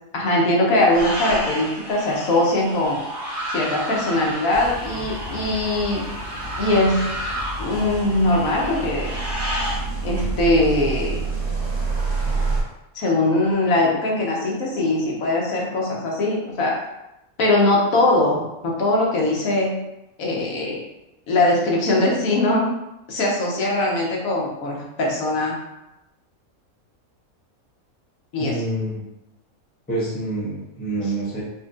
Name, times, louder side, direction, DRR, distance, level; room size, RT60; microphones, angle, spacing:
voice 1, 0.1-3.0 3.5-6.0 6.6-7.0 7.6-9.1 10.0-11.2 12.9-16.8 17.4-19.7 20.2-20.8 21.3-22.6 23.1-25.6 28.3-28.6, left 2 dB, 75° left, -3 dB, 1.2 m, -21 dB
sound 1, 0.9-9.8, equal, 70° right, 1.7 m, -31 dB
sound 2, 4.5-12.6, right 3 dB, 50° right, 0.8 m, -28 dB
voice 2, 28.4-29.0 29.9-31.4, right 2 dB, 10° left, -7 dB, 0.6 m, -27 dB
4.2 x 2.7 x 2.4 m, 0.92 s
omnidirectional pair, 1.5 m